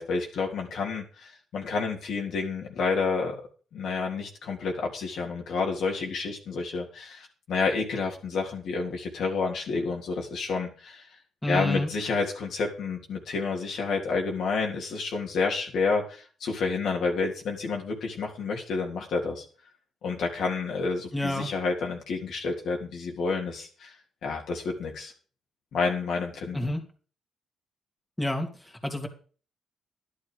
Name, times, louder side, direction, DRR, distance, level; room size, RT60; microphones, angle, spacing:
voice 1, 0.0-3.4 3.7-11.0 11.5-19.4 20.0-23.9 24.2-25.1 25.7-26.7, left 4 dB, 70° left, 0 dB, 3.5 m, -29 dB
voice 2, 11.4-11.9 21.1-21.5 26.5-26.8 28.2-29.1, left 1 dB, 10° left, 2 dB, 2.8 m, -29 dB
11.5 x 11.5 x 5.0 m, 0.40 s
cardioid pair, 85°, 0 cm